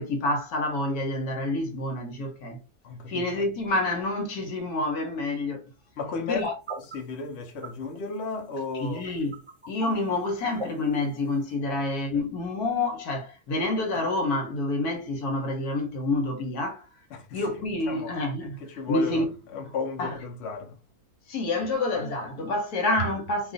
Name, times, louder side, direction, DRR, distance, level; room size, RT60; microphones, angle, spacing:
voice 1, 0.0-2.6 3.1-5.6 6.3-6.6 8.8-9.4 9.7-16.9 17.3-18.6 18.9-19.2 20.0-20.1 21.3-23.5, left 2 dB, 80° left, 1.3 m, -28 dB
voice 2, 2.8-3.3 6.0-6.5 6.9-9.0 11.7-11.8 17.1-17.4 17.9-18.1 18.6-19.2 19.5-20.8, left 4 dB, 55° left, 0.9 m, -34 dB
sound 1, 6.7-7.0 7.3-7.4 7.6-7.7 7.9-8.0 8.9-9.9 10.3-10.6 11.0-11.4, right 2 dB, 20° right, 0.8 m, -37 dB
2.6 x 2.4 x 3.7 m
omnidirectional pair, 1.6 m